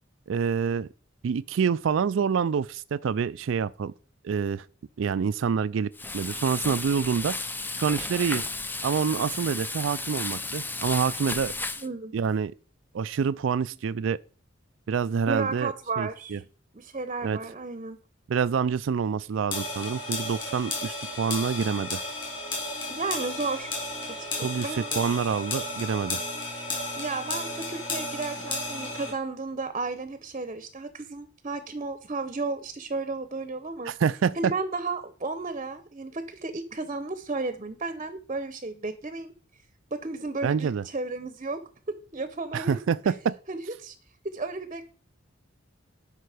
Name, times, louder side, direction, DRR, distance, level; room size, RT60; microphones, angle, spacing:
voice 1, 0.3-0.9 1.2-3.9 4.2-4.7 5.0-5.9 6.1-7.4 7.8-8.4 8.8-11.5 12.1-12.5 12.9-14.2 14.9-16.4 17.2-17.4 18.3-22.0 24.4-26.2 33.8-34.5 40.4-40.8 42.5-43.4, right 6 dB, 75° right, 0.4 m, -27 dB
Frying (food), 5.9-11.9, left 3 dB, 10° left, 0.6 m, -33 dB
voice 2, 11.8-12.1 15.3-16.4 16.7-18.0 22.9-23.7 24.2-25.0 27.0-33.9 34.4-39.3 39.9-41.6 41.9-42.8 43.0-43.1 43.5-43.9 44.2-44.8, right 3 dB, 35° right, 0.8 m, -33 dB
sound 1, 19.5-29.1, left 2 dB, 30° left, 4.4 m, -33 dB
12.0 x 5.6 x 4.9 m
head